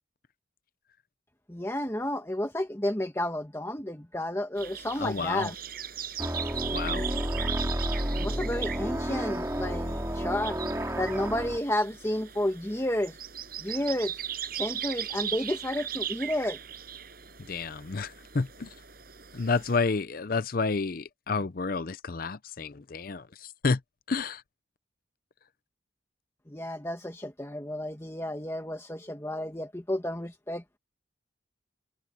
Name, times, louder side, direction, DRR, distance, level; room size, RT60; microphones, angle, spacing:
voice 1, 1.5-5.5 8.2-10.6 11.0-13.2 13.6-14.1 14.5-16.6 26.5-30.8, left 1 dB, 15° left, 1.2 m, -31 dB
sound 1, 4.6-19.8, right 9 dB, 50° right, 7.5 m, -39 dB
voice 2, 5.0-5.5 6.7-7.1 17.5-18.7 19.3-23.8 24.1-24.4, left 4 dB, 45° left, 0.6 m, -30 dB
sound 2, 6.2-11.6, equal, 15° right, 3.2 m, -31 dB
head